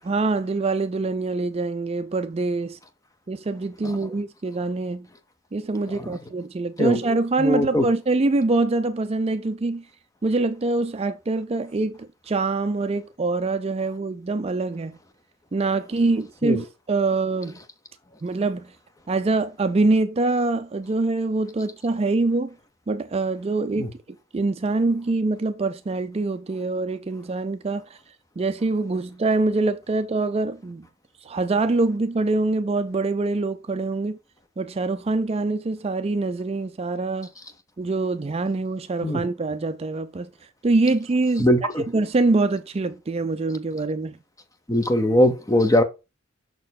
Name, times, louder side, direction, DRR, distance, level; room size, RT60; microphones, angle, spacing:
voice 1, 0.0-2.8 3.3-5.1 5.5-9.8 10.2-15.0 15.5-17.6 18.2-18.7 19.1-22.6 22.9-23.9 24.3-27.8 28.4-30.9 31.2-34.2 34.6-37.3 37.8-40.3 40.6-41.5 41.9-44.2, right 3 dB, 30° right, 0.4 m, -24 dB
voice 2, 7.4-7.8 16.4-16.6 23.8-23.9 39.0-39.2 41.4-41.8 44.7-45.8, left 1 dB, 15° left, 0.9 m, -20 dB
6.2 x 4.4 x 4.1 m
head